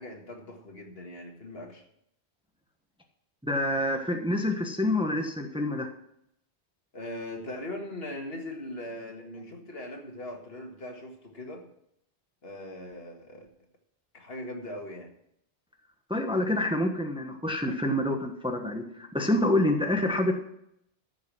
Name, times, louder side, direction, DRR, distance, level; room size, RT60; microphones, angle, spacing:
voice 1, 0.0-1.8 6.9-11.7 12.4-13.5 14.1-15.1, left 1 dB, 65° left, 3 dB, 2.0 m, -40 dB
voice 2, 3.4-5.9 16.1-20.4, left 1 dB, 5° right, 4 dB, 1.1 m, -27 dB
14.0 x 6.2 x 6.1 m, 0.74 s
omnidirectional pair, 1.1 m